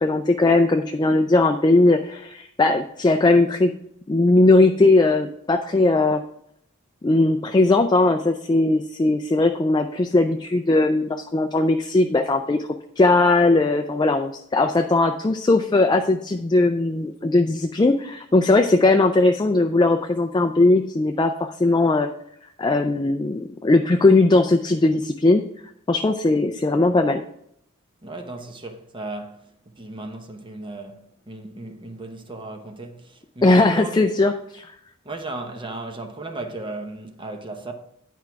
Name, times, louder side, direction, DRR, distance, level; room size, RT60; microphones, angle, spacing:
voice 1, 0.0-3.7 4.1-6.2 7.0-12.7 13.0-22.1 22.6-25.4 25.9-27.2 33.4-34.7, left 2 dB, 20° left, 0.3 m, -19 dB
voice 2, 28.0-34.0 35.0-37.7, right 2 dB, 25° right, 0.7 m, -36 dB
9.8 x 4.6 x 5.8 m
head